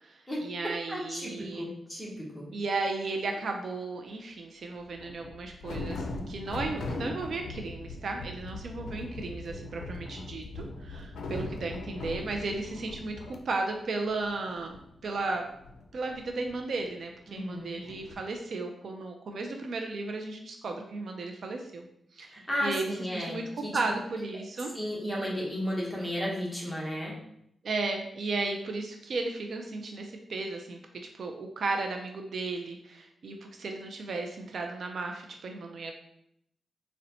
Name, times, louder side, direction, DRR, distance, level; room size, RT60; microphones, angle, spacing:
voice 1, 0.0-1.7 2.5-13.2 13.5-15.4 15.9-21.9 22.1-22.3 22.6-23.4 23.7-24.7 27.6-30.8 31.2-35.9, right 3 dB, 60° right, 3 dB, 0.3 m, -35 dB
voice 2, 0.9-2.5 17.3-17.8 22.3-23.8 24.7-27.1, equal, 5° left, -4 dB, 0.9 m, -34 dB
sound 1, 3.3-3.5 4.8-13.4 13.7-13.8 14.0-17.3 17.8-18.1, left 2 dB, 80° left, 0.4 m, -40 dB
3.9 x 2.1 x 2.7 m, 0.75 s
wide cardioid pair, 125°, 0 cm